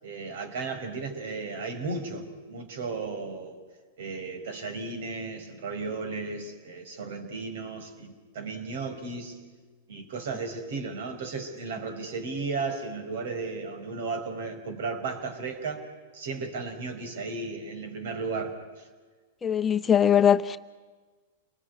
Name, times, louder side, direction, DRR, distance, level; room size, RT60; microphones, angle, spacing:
voice 1, 0.0-3.6 4.0-9.4 9.9-15.9 16.1-18.9, right 4 dB, 70° right, 7 dB, 5.2 m, -35 dB
voice 2, 19.4-20.6, left 8 dB, 20° left, 9 dB, 0.9 m, -21 dB
29.5 x 20.5 x 9.7 m, 1.4 s
hypercardioid pair, 115°, 0 cm